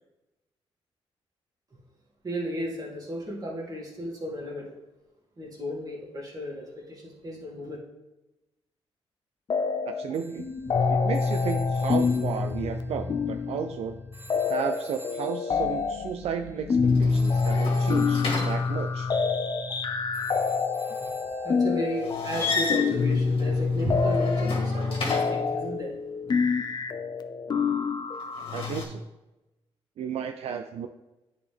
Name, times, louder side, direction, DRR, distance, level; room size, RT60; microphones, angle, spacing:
voice 1, 2.2-4.7 5.4-7.8 21.0-21.1 21.4-25.9, equal, 35° right, -3 dB, 2.2 m, -34 dB
sound 1, 9.5-10.1 10.4-28.7, left 4 dB, 40° left, 0.5 m, -27 dB
voice 2, 9.9-10.5 10.9-14.0 14.5-19.1 28.5-29.0 30.0-30.9, right 7 dB, 75° right, 7 dB, 0.4 m, -33 dB
Telephone, 10.1-13.8 14.1-22.0, right 1 dB, 20° right, 1.0 m, -51 dB
sound 2, 16.8-19.2 22.0-25.6 28.2-28.8, left 3 dB, 60° left, 2.0 m, -33 dB
9.8 x 4.2 x 3.4 m, 0.99 s
cardioid pair, 95°, 11 cm